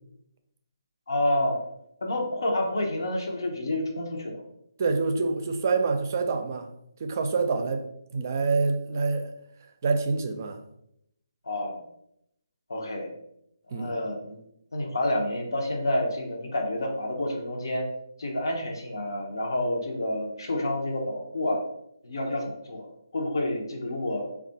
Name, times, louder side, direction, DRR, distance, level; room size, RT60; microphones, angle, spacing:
voice 1, 1.1-1.6 2.0-4.4 11.4-11.8 12.7-13.1 13.7-14.4 14.7-17.9 18.2-21.6 22.0-22.9 23.1-24.3, left 1 dB, 70° left, 1 dB, 0.8 m, -29 dB
voice 2, 4.8-6.7 7.0-7.9 8.1-9.3 9.8-10.6 13.7-13.9, right 4 dB, 40° right, 6 dB, 0.4 m, -26 dB
3.3 x 2.4 x 3.9 m, 0.77 s
figure-of-eight pair, 150°, 2 cm